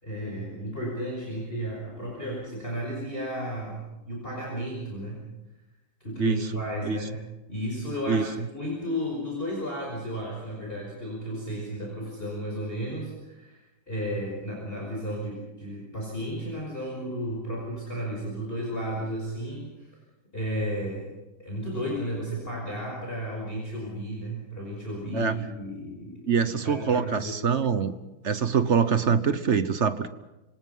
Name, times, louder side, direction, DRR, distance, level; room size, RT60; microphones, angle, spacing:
voice 1, 0.0-5.2 6.0-7.2 7.5-19.9 20.3-21.1 21.4-27.3, equal, 25° left, -2 dB, 5.7 m, -33 dB
voice 2, 6.2-6.5 6.8-7.0 8.1-8.5 25.1-25.4 26.3-27.9 28.2-30.1, right 6 dB, 45° right, 12 dB, 1.0 m, -24 dB
27.0 x 25.5 x 5.6 m, 1.0 s
omnidirectional pair, 2.1 m